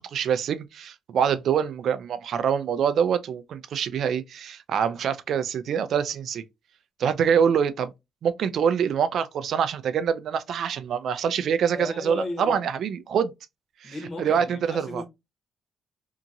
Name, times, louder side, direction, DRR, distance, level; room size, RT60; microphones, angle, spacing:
voice 1, 0.1-6.4 7.0-7.9 8.2-13.3 13.8-13.9 14.2-15.0, right 7 dB, 65° right, 0.4 m, -25 dB
voice 2, 11.7-12.6 13.8-15.1, left 2 dB, 35° left, 1.1 m, -35 dB
2.8 x 2.6 x 2.4 m
cardioid pair, 90°, 0 cm